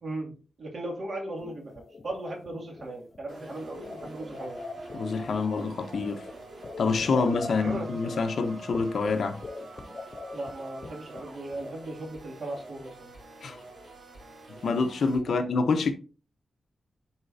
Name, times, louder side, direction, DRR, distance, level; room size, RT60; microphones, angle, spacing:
voice 1, 0.0-4.6 7.5-7.9 10.3-13.1 15.3-15.4, right 1 dB, 55° right, 2.6 m, -37 dB
sound 1, 1.4-11.9, left 3 dB, 35° left, 0.7 m, -43 dB
sound 2, 3.3-15.2, right 2 dB, 75° right, 4.2 m, -46 dB
voice 2, 4.9-6.3 6.8-9.4 13.4-13.6 14.5-15.9, left 4 dB, 65° left, 1.0 m, -27 dB
11.5 x 4.5 x 2.8 m
wide cardioid pair, 150°, 0 cm